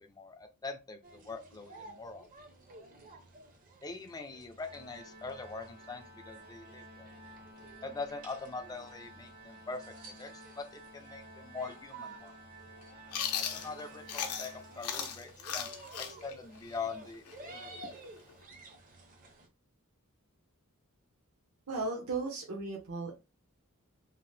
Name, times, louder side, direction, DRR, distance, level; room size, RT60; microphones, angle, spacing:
voice 1, 0.1-2.3 3.8-7.1 7.8-12.3 13.5-15.7 16.0-18.0, left 4 dB, 15° left, 6 dB, 0.4 m, -43 dB
sound 1, 1.0-19.5, right 2 dB, 40° right, 0.6 m, -53 dB
Organ, 4.6-15.4, right 1 dB, 90° right, 1.4 m, -53 dB
Chewing mastication, 13.1-14.5 14.8-18.4, left 8 dB, 90° left, 0.5 m, -37 dB
voice 2, 21.7-23.1, right 3 dB, 75° right, -2 dB, 0.8 m, -36 dB
2.8 x 2.0 x 3.2 m, 0.27 s
head